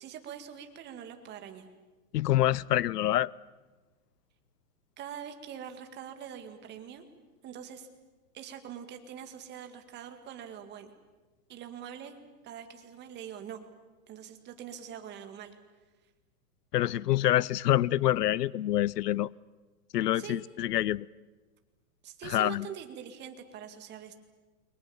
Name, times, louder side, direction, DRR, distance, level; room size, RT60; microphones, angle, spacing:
voice 1, 0.0-1.7 5.0-7.0 7.4-7.9 8.3-10.9 11.5-12.2 12.4-13.6 14.1-15.6 20.1-20.4 22.0-24.1, right 9 dB, 20° right, 7 dB, 2.1 m, -44 dB
voice 2, 2.1-3.3 16.7-19.3 19.9-21.1 22.2-22.7, left 13 dB, 85° left, 24 dB, 0.7 m, -26 dB
29.0 x 23.0 x 7.2 m, 1.3 s
hypercardioid pair, 150°, 46 cm